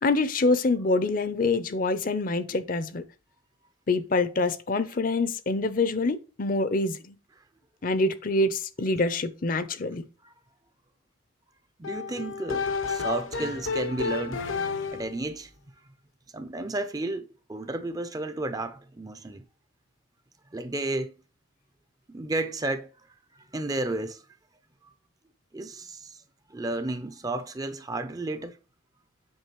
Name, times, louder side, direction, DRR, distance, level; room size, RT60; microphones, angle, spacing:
voice 1, 0.0-3.0 3.9-7.2 7.8-10.0, left 3 dB, 45° left, 0.6 m, -26 dB
sound 1, 11.8-15.2, left 4 dB, 80° left, 0.9 m, -31 dB
voice 2, 11.8-14.5 14.9-15.5 16.3-19.4 20.5-21.1 22.1-22.9 23.3-24.2 25.5-26.2 26.5-28.6, right 2 dB, 20° right, 0.4 m, -32 dB
8.0 x 5.1 x 3.0 m
head